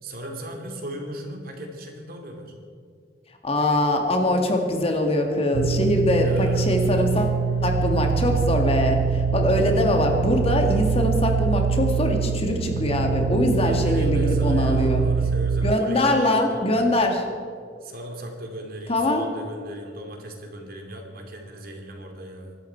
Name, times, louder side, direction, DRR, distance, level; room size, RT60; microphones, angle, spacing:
voice 1, 0.0-2.5 6.1-6.8 13.6-16.6 17.8-22.6, equal, 55° right, 3 dB, 2.8 m, -37 dB
voice 2, 3.4-15.0 15.6-17.2 18.9-19.2, left 1 dB, 35° left, 3 dB, 2.0 m, -23 dB
sound 1, 5.5-15.8, right 6 dB, 90° right, 0.3 m, -24 dB
25.0 x 12.5 x 4.6 m, 2.3 s
head